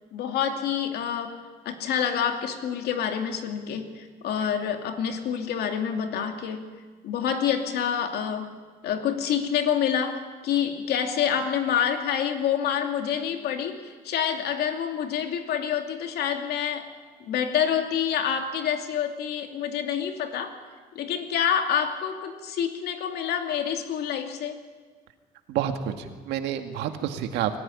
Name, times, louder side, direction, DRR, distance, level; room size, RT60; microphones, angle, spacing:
voice 1, 0.1-1.4 1.6-16.9 17.2-20.5 20.9-24.6, left 8 dB, 75° left, 5 dB, 2.6 m, -27 dB
voice 2, 25.5-27.6, right 10 dB, 85° right, 6 dB, 2.0 m, -29 dB
24.0 x 15.0 x 9.9 m, 1.5 s
cardioid pair, 110°, 17 cm